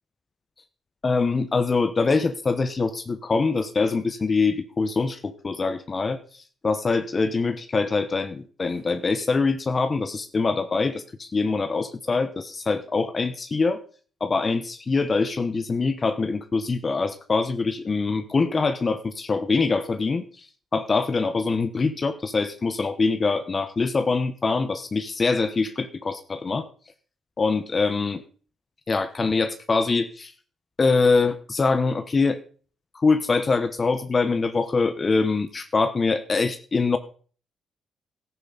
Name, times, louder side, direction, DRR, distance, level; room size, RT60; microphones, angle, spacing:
voice 1, 1.0-13.8 14.2-20.5 20.7-26.7 27.4-28.2 28.9-30.3 30.8-32.4 32.9-37.0, left 4 dB, 30° left, 10 dB, 1.0 m, -24 dB
14.0 x 10.5 x 4.1 m, 0.41 s
cardioid pair, 90°, 0 cm